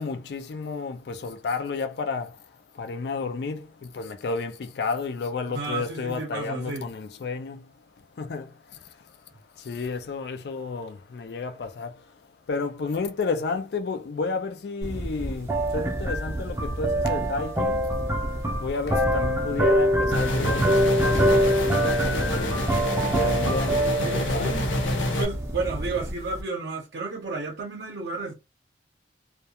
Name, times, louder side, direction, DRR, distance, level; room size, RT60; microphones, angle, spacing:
voice 1, 0.0-2.4 2.8-7.7 8.2-8.8 9.6-12.0 12.5-17.9 18.6-21.5 22.1-24.8, left 4 dB, 60° left, 0.4 m, -32 dB
voice 2, 5.5-6.9 24.0-24.7 25.2-28.3, right 3 dB, 65° right, 0.6 m, -32 dB
sound 1, 14.8-26.4, equal, 15° right, 0.4 m, -25 dB
sound 2, 20.1-25.2, left 1 dB, 90° left, 0.7 m, -27 dB
2.3 x 2.2 x 2.7 m
head